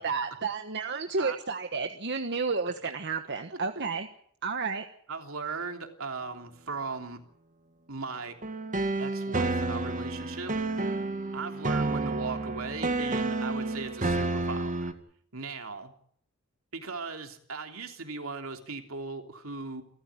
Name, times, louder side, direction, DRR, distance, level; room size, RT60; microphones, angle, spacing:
voice 1, 0.0-4.1 4.4-4.8, right 4 dB, 55° right, 7 dB, 1.3 m, -31 dB
voice 2, 5.1-7.2 7.9-8.4 9.0-10.5 11.3-14.9 15.3-15.9 16.7-19.8, right 4 dB, 75° right, 4 dB, 3.3 m, -38 dB
sound 1, 8.4-14.9, right 2 dB, 40° right, 2.0 m, -30 dB
29.0 x 14.0 x 8.6 m, 0.65 s
head